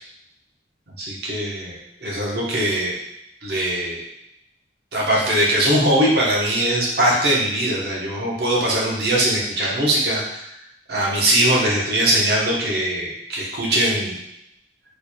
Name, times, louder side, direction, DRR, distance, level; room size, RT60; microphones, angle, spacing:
voice 1, 1.0-3.0 3.4-4.0 4.9-10.4 10.9-14.2, right 1 dB, 65° right, -4 dB, 1.1 m, -21 dB
4.6 x 3.2 x 2.3 m, 0.80 s
head